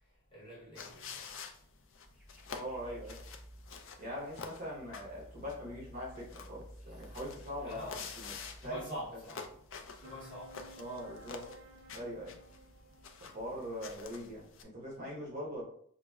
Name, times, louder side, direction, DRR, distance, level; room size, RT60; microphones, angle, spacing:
voice 1, 0.3-1.3 7.6-8.1 8.6-9.4 10.0-10.5, equal, 20° left, 1.0 m, -45 dB
sound 1, 0.8-14.6, left 5 dB, 60° left, 0.4 m, -48 dB
sound 2, 2.0-14.1, equal, ahead, 0.6 m, -56 dB
voice 2, 2.5-3.2 4.0-8.4 8.6-8.9 10.8-11.5 11.9-12.3 13.2-15.6, equal, 35° right, 1.0 m, -42 dB
sound 3, 10.0-14.9, right 1 dB, 55° right, 0.4 m, -56 dB
4.8 x 2.1 x 2.3 m
head